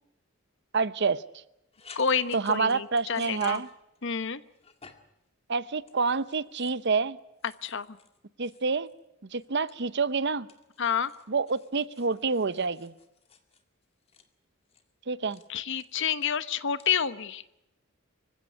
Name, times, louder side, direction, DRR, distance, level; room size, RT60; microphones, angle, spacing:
voice 1, 0.7-1.2 2.3-3.7 5.5-7.2 8.4-8.9 9.3-10.5 11.3-12.9 15.1-15.4, right 4 dB, 55° right, 16 dB, 0.8 m, -27 dB
sound 1, 1.7-4.2 4.6-5.2 5.8-6.9 7.4-9.0 9.3-10.1 10.5-14.3 14.7-14.9 15.3-15.5 15.7-16.3 16.8-17.1, left 5 dB, 30° left, 2.1 m, -53 dB
voice 2, 2.0-3.6 4.0-4.4 7.6-7.9 10.8-11.1 15.5-17.4, left 7 dB, 60° left, 14 dB, 1.1 m, -29 dB
25.5 x 16.0 x 9.6 m, 0.87 s
head